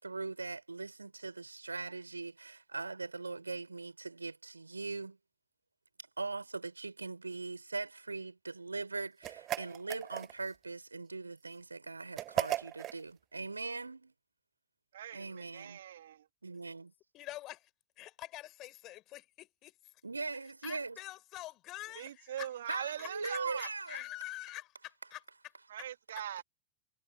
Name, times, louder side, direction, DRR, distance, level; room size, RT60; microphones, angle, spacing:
voice 1, 0.0-5.2 6.2-14.1 15.1-15.8 16.4-16.9 20.0-21.0 22.7-24.1, right 3 dB, 80° right, 6.0 m, -41 dB
sound 1, 9.2-10.6 12.2-13.0, right 14 dB, 35° right, 1.2 m, -36 dB
voice 2, 14.9-16.3 21.9-23.7 25.7-26.4, right 11 dB, 60° right, 2.4 m, -41 dB
voice 3, 17.1-17.7 18.0-19.7 20.6-25.2, left 16 dB, 35° left, 5.0 m, -46 dB
figure-of-eight pair, 90°, 0 cm